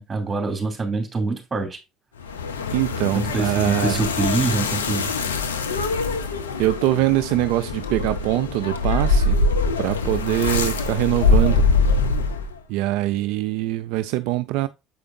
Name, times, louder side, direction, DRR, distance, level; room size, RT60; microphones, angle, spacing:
voice 1, 0.0-1.8 3.1-5.1, right 4 dB, 25° right, 2.6 m, -25 dB
sound 1, 2.2-12.6, left 3 dB, 90° left, 0.7 m, -23 dB
voice 2, 2.7-4.0 6.6-9.4 9.8-11.7 12.7-14.7, right 16 dB, 70° right, 0.3 m, -23 dB
7.7 x 4.9 x 2.6 m
hypercardioid pair, 65°, 0 cm